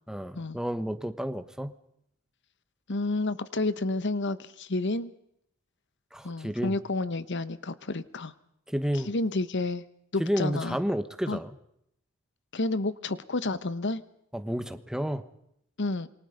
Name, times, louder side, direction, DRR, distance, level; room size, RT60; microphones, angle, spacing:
voice 1, 0.1-1.7 6.1-6.7 8.7-9.1 10.2-11.5 14.3-15.3, equal, 5° right, 10 dB, 1.2 m, -31 dB
voice 2, 2.9-5.1 6.2-8.3 8.9-9.8 10.1-10.8 11.3-11.4 12.5-14.0 15.8-16.1, left 2 dB, 60° left, 15 dB, 1.1 m, -30 dB
27.5 x 24.0 x 5.2 m, 0.75 s
head